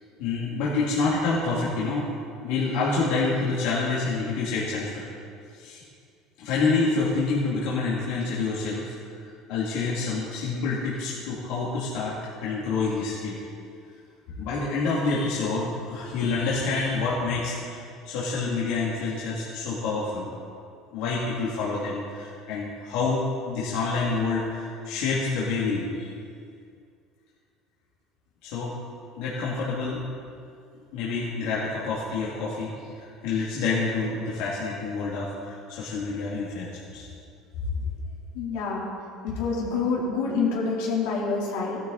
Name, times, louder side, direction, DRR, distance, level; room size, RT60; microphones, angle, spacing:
voice 1, 0.2-2.1 2.4-5.0 5.5-5.8 6.4-12.2 12.4-13.4 14.3-20.3 20.9-26.1 28.4-28.7 29.2-30.0 30.9-37.1 37.7-37.8, left 4 dB, 70° left, -7 dB, 2.9 m, -27 dB
voice 2, 38.3-38.9 39.2-41.8, left 4 dB, 85° left, -5 dB, 4.0 m, -27 dB
16.5 x 12.0 x 4.3 m, 2.4 s
cardioid pair, 155°, 0 cm